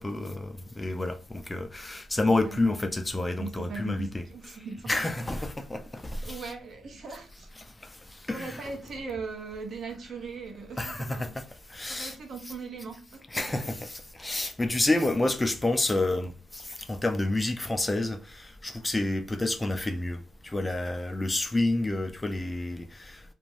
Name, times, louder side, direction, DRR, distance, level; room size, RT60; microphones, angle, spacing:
voice 1, 0.0-4.2 4.9-6.5 7.8-8.6 10.8-11.3 11.7-12.1 13.3-23.2, left 2 dB, 15° left, 0.4 m, -29 dB
voice 2, 2.4-2.7 3.4-4.9 6.3-7.7 8.3-11.4 11.9-13.8, right 4 dB, 50° right, 0.8 m, -40 dB
2.5 x 2.2 x 3.1 m
cardioid pair, 90°, 0 cm